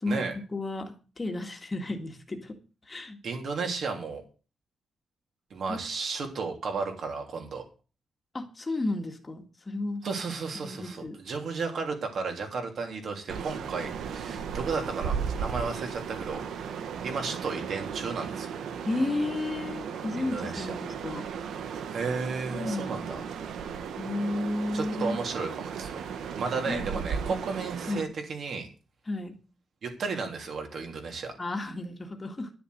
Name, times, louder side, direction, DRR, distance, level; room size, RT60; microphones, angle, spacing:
voice 1, 0.0-2.6 2.9-3.2 5.7-5.8 8.3-10.0 10.5-11.2 18.9-21.3 22.5-23.3 24.0-25.2 26.7-26.8 27.2-27.3 27.9-28.1 29.1-29.3 31.4-32.5, left 2 dB, 20° left, 5 dB, 2.0 m, -33 dB
voice 2, 3.2-4.2 5.5-7.6 10.0-16.4 17.0-18.5 20.2-20.7 21.9-23.2 23.6-23.8 24.7-25.9 26.3-28.7 29.8-31.3, right 4 dB, 50° right, 3 dB, 3.2 m, -33 dB
sound 1, 13.3-28.0, right 7 dB, 85° right, 1.4 m, -36 dB
11.5 x 6.9 x 7.9 m, 0.35 s
wide cardioid pair, 175°, 0 cm